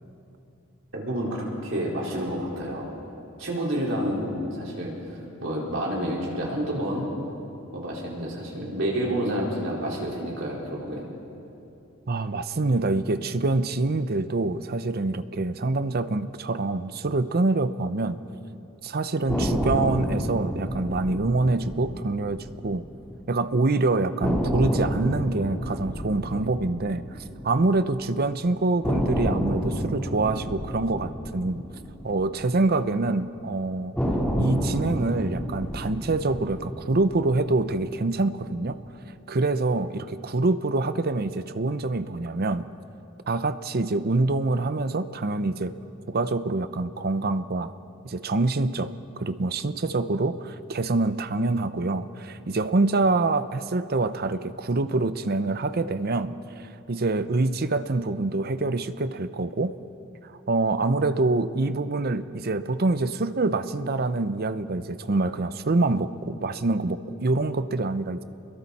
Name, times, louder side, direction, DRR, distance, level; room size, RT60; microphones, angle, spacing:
voice 1, 0.9-2.9 3.4-4.9 5.4-7.1 7.7-11.1, equal, 70° right, -4 dB, 4.6 m, -29 dB
voice 2, 12.1-18.2 18.8-22.8 23.3-27.0 27.4-31.6 32.0-33.9 34.4-38.8 39.3-42.7 43.3-45.7 46.1-47.7 48.0-59.7 60.5-68.2, right 2 dB, 50° right, 12 dB, 0.7 m, -25 dB
sound 1, 19.3-23.4 23.6-23.7 24.2-28.3 28.8-33.2 33.9-38.3, equal, 5° left, 3.7 m, -30 dB
28.5 x 22.0 x 4.2 m, 2.8 s
head